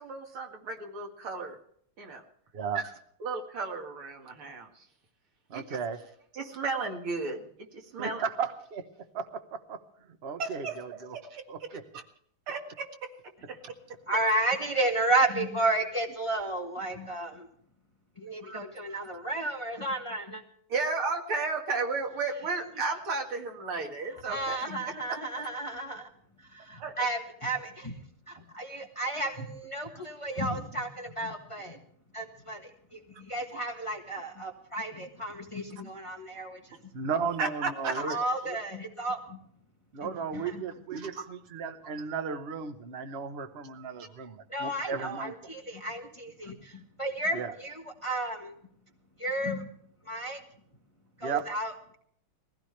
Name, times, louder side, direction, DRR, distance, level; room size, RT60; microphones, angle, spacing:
voice 1, 0.0-1.6 2.0-2.2 2.7-2.8 3.2-4.8 5.5-5.8 6.3-8.2 10.4-10.8 11.1-11.8 12.5-13.1 13.5-13.6 13.9-14.0 18.4-18.6 20.7-24.6 26.8-26.9 37.4-38.2 40.9-41.2, right 4 dB, 90° right, 3 dB, 2.8 m, -34 dB
voice 2, 5.5-6.0 8.0-8.9 9.1-9.8 10.2-11.2 11.5-11.8 36.9-38.2 38.4-38.6 39.9-45.5 47.3-47.5 51.2-51.5, right 5 dB, 40° right, 8 dB, 1.0 m, -35 dB
voice 3, 14.1-17.5 18.2-20.4 24.2-26.1 26.4-28.0 28.3-31.8 32.1-36.8 37.9-39.4 40.0-40.6 44.5-48.5 49.2-49.7 50.0-50.4 51.2-52.0, right 2 dB, 20° left, 2 dB, 1.1 m, -32 dB
21.0 x 16.0 x 3.3 m, 0.66 s
omnidirectional pair, 2.3 m